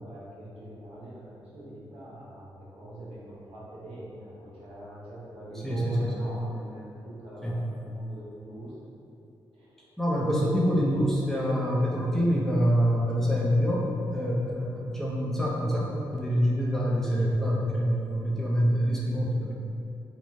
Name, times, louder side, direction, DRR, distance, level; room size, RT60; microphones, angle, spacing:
voice 1, 0.0-8.7 9.5-9.9 10.2-10.6 18.2-18.5, right 1 dB, 80° right, -8 dB, 0.8 m, -42 dB
voice 2, 5.6-6.1 7.4-7.6 10.0-13.9 14.1-19.5, equal, 5° left, -5 dB, 0.6 m, -26 dB
3.1 x 2.2 x 2.6 m, 2.6 s
cardioid pair, 70°, 10 cm